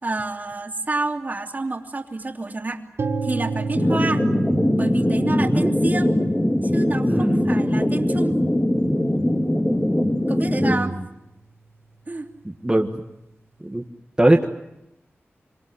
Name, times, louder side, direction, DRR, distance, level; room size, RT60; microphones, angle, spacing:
voice 1, 0.0-2.8 3.2-4.3 4.8-6.2 6.6-8.4 10.3-11.0 12.1-12.3, right 2 dB, 40° right, 4 dB, 2.9 m, -28 dB
sound 1, 3.0-10.9, right 4 dB, 75° right, 2.1 m, -33 dB
sound 2, 3.7-10.8, left 1 dB, 20° left, 2.2 m, -21 dB
voice 2, 5.3-5.7 7.1-7.5 10.6-11.0 12.4-13.0 13.6-13.8 14.2-14.4, right 1 dB, 15° right, 1 dB, 1.7 m, -21 dB
26.5 x 26.0 x 7.9 m, 0.91 s
wide cardioid pair, 95°, 4 cm